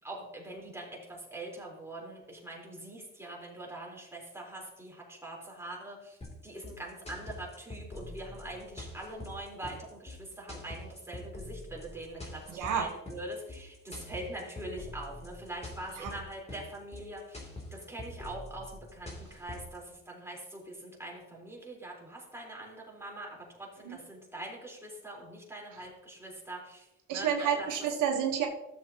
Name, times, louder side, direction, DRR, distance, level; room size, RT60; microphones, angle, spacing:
voice 1, 0.0-27.7, right 1 dB, 10° right, -3 dB, 4.0 m, -43 dB
sound 1, 6.2-19.8, left 2 dB, 20° left, 3.0 m, -45 dB
voice 2, 12.5-12.9 16.0-16.1 23.8-24.0 27.1-28.5, right 8 dB, 85° right, 2 dB, 1.3 m, -29 dB
13.5 x 7.2 x 2.9 m, 0.89 s
cardioid pair, 90°, 30 cm